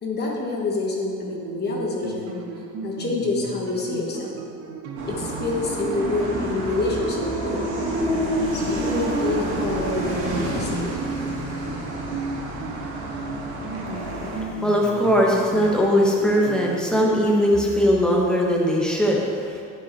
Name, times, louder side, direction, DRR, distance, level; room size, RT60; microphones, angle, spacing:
voice 1, 0.0-2.4 2.8-4.3 5.1-7.6 8.5-11.0, left 3 dB, 35° left, -2 dB, 1.3 m, -27 dB
sound 1, 1.2-17.0, right 3 dB, 50° right, 0.9 m, -35 dB
sound 2, 5.0-14.4, right 1 dB, 75° right, 2.4 m, -28 dB
voice 2, 14.1-19.6, equal, ahead, -3 dB, 1.1 m, -20 dB
11.0 x 5.6 x 4.5 m, 2.4 s
cardioid pair, 170°, 31 cm